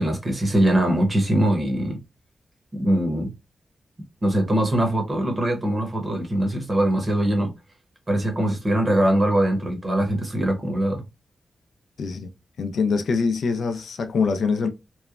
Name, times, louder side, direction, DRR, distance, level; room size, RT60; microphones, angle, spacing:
voice 1, 0.0-2.0 2.8-3.3 4.2-7.5 8.1-11.0, right 1 dB, 25° right, 0.9 m, -22 dB
voice 2, 12.0-12.3 12.6-14.7, left 5 dB, 80° left, 0.4 m, -24 dB
3.0 x 2.1 x 2.3 m
wide cardioid pair, 145°, 0 cm